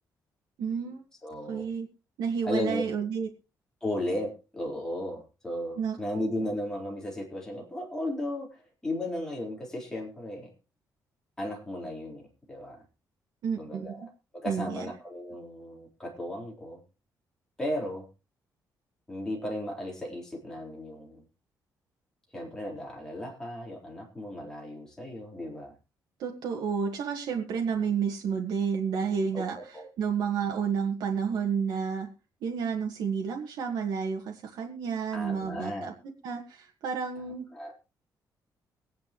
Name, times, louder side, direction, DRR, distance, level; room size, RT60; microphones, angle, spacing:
voice 1, 0.6-1.0 1.5-1.9 2.2-3.3 5.8-6.2 13.4-14.0 14.5-14.9 26.2-32.1 32.4-35.9 36.2-37.5, right 6 dB, 85° right, 2 dB, 1.7 m, -31 dB
voice 2, 1.2-1.7 2.4-2.8 3.8-10.5 11.4-12.8 13.6-16.8 17.6-18.1 19.1-21.2 22.3-25.7 29.3-29.4 29.7-29.9 35.1-35.9 37.5-37.7, left 1 dB, 10° left, -2 dB, 4.0 m, -35 dB
23.5 x 9.5 x 3.0 m, 0.30 s
cardioid pair, 170°, 7 cm